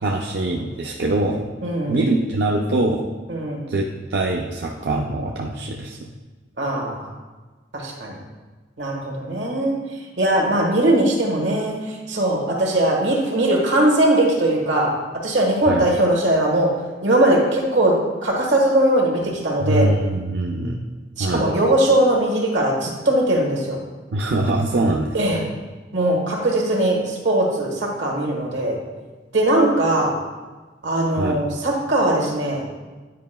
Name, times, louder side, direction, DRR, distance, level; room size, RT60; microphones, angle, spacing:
voice 1, 0.0-1.4 1.9-3.1 3.7-6.0 15.7-15.9 19.6-20.8 21.2-21.5 24.1-25.5 31.2-31.4, right 2 dB, 65° right, -1 dB, 0.5 m, -23 dB
voice 2, 1.6-2.0 3.3-3.7 6.6-7.1 7.7-8.1 8.8-9.7 10.2-14.9 15.2-16.7 17.0-17.9 18.2-19.9 21.2-23.8 25.1-25.4 25.9-28.8 29.3-30.1 30.8-32.6, right 1 dB, 85° right, -1 dB, 1.4 m, -20 dB
9.3 x 4.9 x 2.2 m, 1.3 s
head